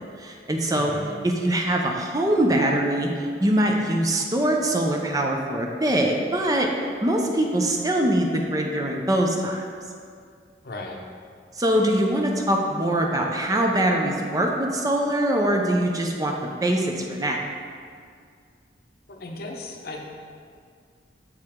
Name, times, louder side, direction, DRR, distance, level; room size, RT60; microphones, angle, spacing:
voice 1, 0.0-0.9 1.2-6.7 7.0-9.6 11.5-16.3 16.6-17.4, right 1 dB, 20° right, 1 dB, 0.5 m, -23 dB
voice 2, 0.7-1.2 10.6-11.0 19.1-20.0, left 2 dB, 55° left, 1 dB, 0.7 m, -36 dB
7.5 x 4.8 x 3.6 m, 2.2 s
head